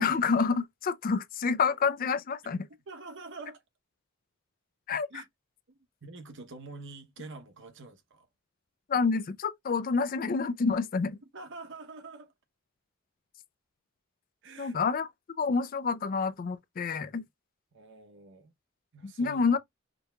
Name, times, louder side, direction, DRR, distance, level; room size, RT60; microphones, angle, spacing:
voice 1, 0.0-2.7 4.9-5.1 8.9-11.2 14.6-15.1 15.4-17.2 19.0-19.6, left 5 dB, 45° left, 0.4 m, -28 dB
voice 2, 2.9-3.6 5.1-5.3 5.7-8.3 11.3-12.3 14.4-14.8 17.7-18.5 18.9-19.5, right 3 dB, 60° right, 0.9 m, -46 dB
5.2 x 2.8 x 2.3 m
head